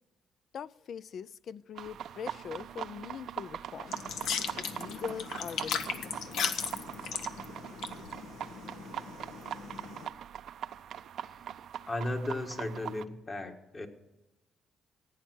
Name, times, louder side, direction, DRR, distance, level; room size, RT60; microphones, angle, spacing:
voice 1, 0.5-4.0 4.5-6.4, left 7 dB, 60° left, 19 dB, 0.4 m, -42 dB
sound 1, 1.7-13.0, right 10 dB, 70° right, 0.5 m, -42 dB
sound 2, 3.9-10.1, left 7 dB, 80° left, 1.0 m, -37 dB
voice 2, 11.9-13.9, left 1 dB, 35° left, 4 dB, 1.7 m, -35 dB
16.0 x 9.2 x 6.2 m, 1.0 s
cardioid pair, 90°, 0 cm